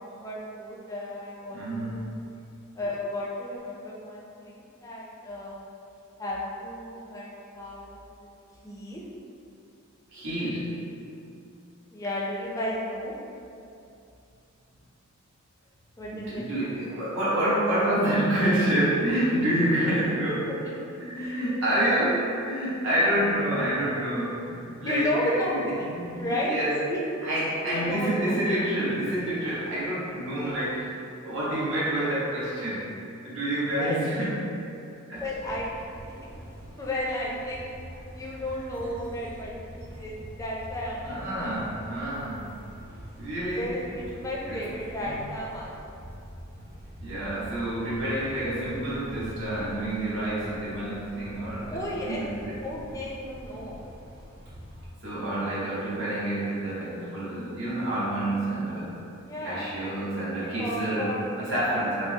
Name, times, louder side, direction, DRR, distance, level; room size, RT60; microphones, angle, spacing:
voice 1, 0.0-1.6 1.9-2.0 2.8-5.6 6.2-8.0 8.6-9.0 11.9-13.1 16.0-16.4 21.2-21.3 24.8-26.6 26.8-27.0 27.7-28.4 33.8-34.0 35.2-35.7 36.8-37.6 38.1-41.6 43.6-46.0 51.7-52.3 52.6-53.8 59.2-61.8, left 1 dB, 15° left, -4 dB, 0.5 m, -33 dB
voice 2, 1.5-2.2 10.1-10.8 16.1-20.5 21.0-26.8 27.2-30.9 31.2-32.9 33.2-34.6 35.1-35.2 41.0-42.7 43.2-43.9 44.4-44.7 45.0-45.2 47.0-52.5 55.0-59.0 59.4-62.1, right 1 dB, 65° right, -9 dB, 1.1 m, -28 dB
sound 1, 35.1-54.9, equal, 45° right, 0.5 m, -44 dB
4.5 x 2.0 x 2.8 m, 2.6 s
head